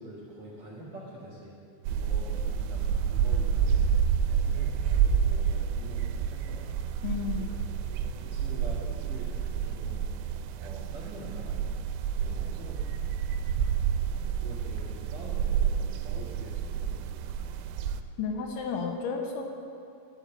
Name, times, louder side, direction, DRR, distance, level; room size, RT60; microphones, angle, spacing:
voice 1, 0.0-3.9 4.3-6.7 7.3-11.7 12.1-13.2 14.1-17.2, right 1 dB, 50° right, -7 dB, 2.4 m, -45 dB
sound 1, 1.9-18.0, right 7 dB, 90° right, 3.2 m, -29 dB
voice 2, 7.0-7.5 18.2-19.5, left 5 dB, 85° left, 3 dB, 2.9 m, -32 dB
13.5 x 4.8 x 7.8 m, 2.6 s
omnidirectional pair, 5.7 m